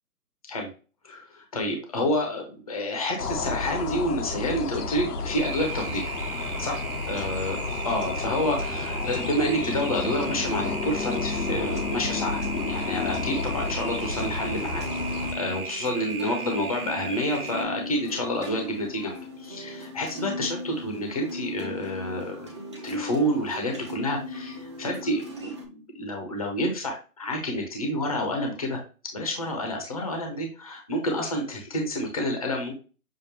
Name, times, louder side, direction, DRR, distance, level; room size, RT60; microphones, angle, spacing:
voice 1, 1.0-6.1 6.6-14.8 15.3-28.8 29.1-32.8, left 1 dB, 25° left, 2 dB, 0.8 m, -29 dB
sound 1, 3.2-15.3, left 4 dB, 90° left, 1.1 m, -31 dB
sound 2, 5.4-17.6, right 5 dB, 70° right, 1.2 m, -36 dB
sound 3, 14.0-25.6, left 1 dB, 20° right, 0.7 m, -38 dB
6.7 x 2.5 x 2.9 m, 0.34 s
hypercardioid pair, 170°, 46 cm